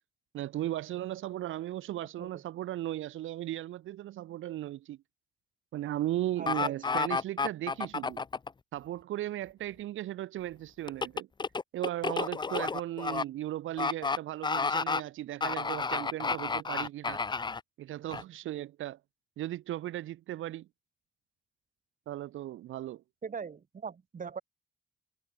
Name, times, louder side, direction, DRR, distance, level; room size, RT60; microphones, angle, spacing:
voice 1, 0.3-5.0 5.7-8.2 8.7-11.3 11.7-17.2 17.8-19.0 19.4-20.7 22.1-23.0, right 14 dB, 85° right, 5.9 m, -36 dB
voice 2, 6.4-6.7 23.2-24.4, right 6 dB, 40° right, 6.8 m, -40 dB
sound 1, 6.5-8.5 10.9-13.2 13.8-14.2 14.4-15.0 15.4-17.6 18.1-18.2, left 4 dB, 20° left, 0.7 m, -31 dB
cardioid pair, 90°, 20 cm